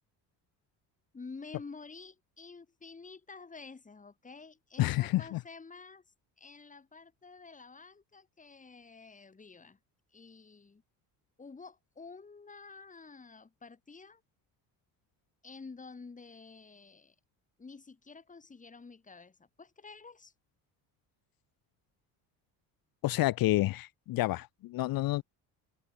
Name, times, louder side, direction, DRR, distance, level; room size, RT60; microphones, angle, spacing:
voice 1, 1.1-6.0 6.4-9.8 10.1-10.8 11.4-14.2 15.4-17.2 17.6-20.3, left 4 dB, 20° left, 4.0 m, -50 dB
voice 2, 4.8-5.4 23.0-25.2, left 17 dB, 60° left, 0.8 m, -29 dB
open air
cardioid pair, 120°, 39 cm